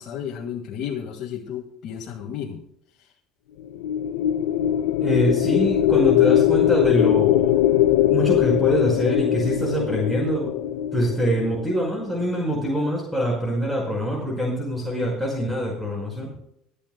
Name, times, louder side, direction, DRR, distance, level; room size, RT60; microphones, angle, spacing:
voice 1, 0.0-2.6 3.0-3.1, left 8 dB, 55° left, 1 dB, 1.8 m, -33 dB
sound 1, 3.6-12.1, left 12 dB, 90° left, 0.5 m, -21 dB
voice 2, 5.0-7.5 8.1-10.5 10.9-16.3, equal, 5° right, -2 dB, 5.3 m, -24 dB
24.0 x 10.0 x 2.3 m, 0.74 s
cardioid pair, 120°, 0 cm